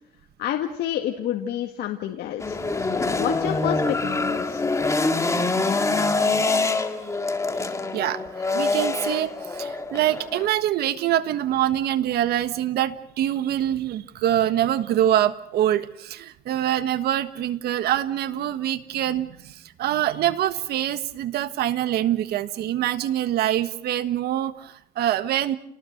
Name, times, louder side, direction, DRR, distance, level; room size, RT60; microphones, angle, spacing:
voice 1, 0.4-4.6, left 11 dB, 75° left, 3 dB, 1.9 m, -29 dB
sound 1, 2.4-10.5, left 3 dB, 15° left, 2.0 m, -25 dB
voice 2, 8.5-25.6, right 12 dB, 70° right, 13 dB, 1.4 m, -24 dB
29.5 x 19.5 x 6.6 m, 0.75 s
cardioid pair, 110°, 17 cm